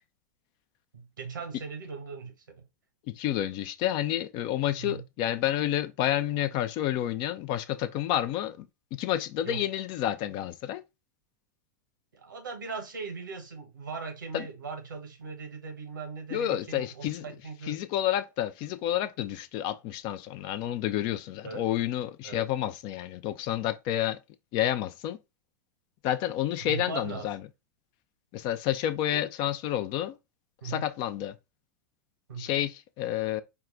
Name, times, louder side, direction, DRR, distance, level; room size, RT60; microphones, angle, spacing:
voice 1, 0.9-2.7 4.8-5.0 9.4-9.7 12.1-17.8 21.4-21.7 22.2-22.5 26.6-27.3 29.1-29.2 30.6-30.8 32.3-32.6, right 5 dB, 85° right, 1.3 m, -39 dB
voice 2, 3.1-8.7 8.9-10.8 14.3-14.4 16.3-17.2 17.7-24.2 24.5-25.2 26.0-27.4 28.3-30.2 30.6-31.4 32.4-33.4, left 12 dB, 45° left, 0.4 m, -29 dB
4.6 x 2.2 x 3.7 m
hypercardioid pair, 100°, 10 cm